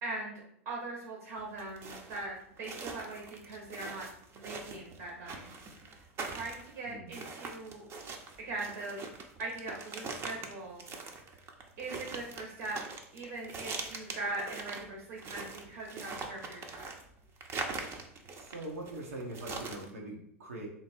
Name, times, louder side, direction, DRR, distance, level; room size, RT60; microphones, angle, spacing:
voice 1, 0.0-4.0 4.3-5.5 6.3-7.9 8.4-9.0 9.4-10.8 11.8-12.8 13.1-16.9, right 2 dB, 70° right, -3 dB, 1.3 m, -41 dB
sound 1, 1.4-19.9, right 4 dB, 35° right, 0.7 m, -43 dB
voice 2, 6.8-7.2 18.3-20.7, right 2 dB, 85° right, -1 dB, 1.2 m, -42 dB
3.2 x 2.9 x 4.4 m, 0.71 s
hypercardioid pair, 95°, 8 cm